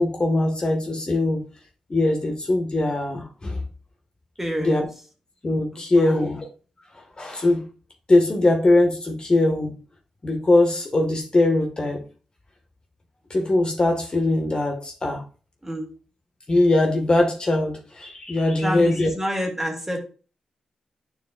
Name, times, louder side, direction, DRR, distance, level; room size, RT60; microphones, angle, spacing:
voice 1, 0.0-1.4 1.9-3.6 4.6-4.9 5.4-6.5 7.2-7.6 8.1-9.7 10.2-12.0 13.3-15.2 16.5-19.1, left 2 dB, 40° left, 2 dB, 1.6 m, -21 dB
voice 2, 4.4-4.8 5.7-6.3 15.6-15.9 18.6-20.0, equal, 15° right, 2 dB, 2.3 m, -28 dB
9.1 x 4.5 x 2.4 m, 0.38 s
supercardioid pair, 45°, 2 cm